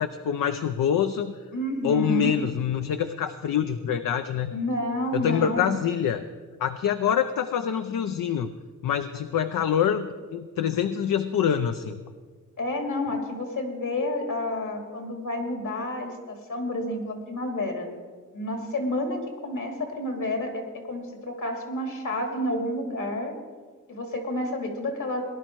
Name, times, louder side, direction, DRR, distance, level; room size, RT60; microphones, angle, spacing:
voice 1, 0.0-1.3 1.8-4.5 5.1-6.2 6.6-8.5 8.8-12.0, left 8 dB, 85° left, 9 dB, 0.6 m, -25 dB
voice 2, 1.5-2.3 4.5-5.8 12.6-17.9 18.3-23.3 23.9-25.2, left 1 dB, 70° left, 3 dB, 2.7 m, -30 dB
18.5 x 11.0 x 4.7 m, 1.5 s
cardioid pair, 95°, 32 cm